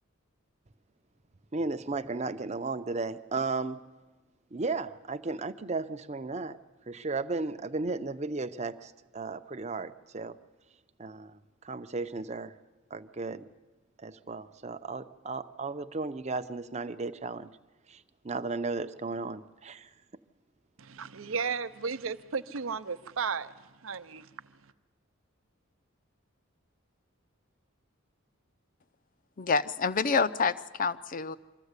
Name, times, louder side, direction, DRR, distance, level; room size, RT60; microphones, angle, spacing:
voice 1, 1.5-3.8 4.5-6.6 6.9-10.4 11.0-11.4 11.6-12.5 12.9-13.4 14.0-17.5 17.9-19.9, right 3 dB, 35° right, 0.7 m, -35 dB
voice 2, 20.8-24.3, right 5 dB, 75° right, 0.7 m, -34 dB
voice 3, 29.4-31.4, left 4 dB, 40° left, 0.6 m, -27 dB
24.5 x 14.0 x 8.2 m
head